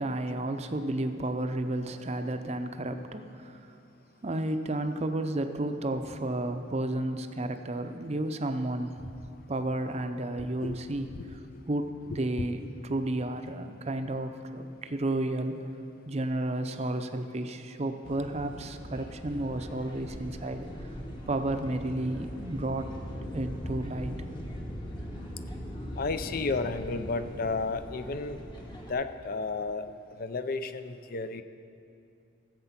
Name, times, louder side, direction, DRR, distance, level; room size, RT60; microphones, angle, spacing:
voice 1, 0.0-3.6 4.2-9.1 9.5-11.4 11.7-15.6 16.1-20.7 21.3-22.9 23.2-24.3, right 1 dB, 30° right, 7 dB, 0.6 m, -32 dB
sound 1, 18.0-28.9, equal, 25° left, 1.1 m, -40 dB
voice 2, 26.0-28.4 28.9-29.9 30.2-31.4, left 3 dB, 45° left, 11 dB, 0.5 m, -32 dB
15.5 x 7.7 x 5.8 m, 2.6 s
head